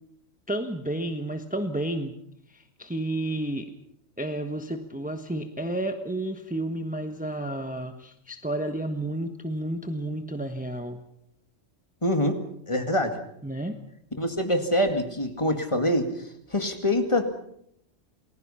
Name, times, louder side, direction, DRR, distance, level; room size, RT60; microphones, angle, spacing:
voice 1, 0.5-2.1 2.5-3.7 4.2-11.0 13.4-13.8, right 1 dB, 5° right, 6 dB, 1.3 m, -31 dB
voice 2, 12.0-13.2 14.2-17.3, left 1 dB, 25° left, 6 dB, 2.3 m, -25 dB
28.5 x 20.5 x 5.7 m, 0.70 s
omnidirectional pair, 1.3 m